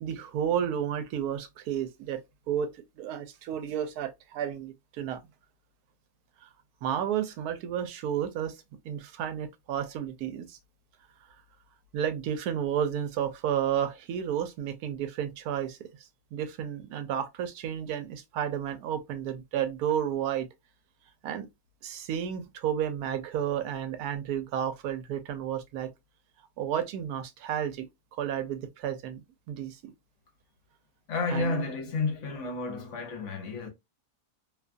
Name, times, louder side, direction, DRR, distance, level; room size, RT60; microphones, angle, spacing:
voice 1, 0.0-5.2 6.4-6.5 6.8-8.6 8.8-10.6 11.9-15.8 16.3-20.5 21.2-21.5 21.8-25.9 26.6-27.9 28.2-29.9 31.3-31.7, right 9 dB, 80° right, 1.1 m, -32 dB
voice 2, 31.1-33.7, left 3 dB, 60° left, 0.9 m, -31 dB
2.6 x 2.3 x 2.4 m
omnidirectional pair, 1.6 m